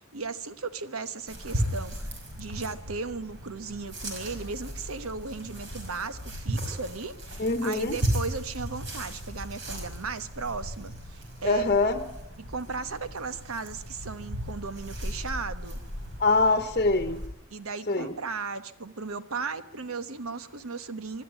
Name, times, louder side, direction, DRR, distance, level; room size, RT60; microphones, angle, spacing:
voice 1, 0.1-11.6 12.4-15.8 17.5-21.2, right 4 dB, 85° right, 12 dB, 1.2 m, -36 dB
sound 1, 1.3-17.3, equal, 60° right, 5.5 m, -36 dB
voice 2, 7.4-8.0 11.4-12.0 16.2-17.2 17.9-18.2, left 3 dB, 40° left, 8 dB, 1.1 m, -24 dB
25.0 x 12.5 x 9.1 m, 0.84 s
head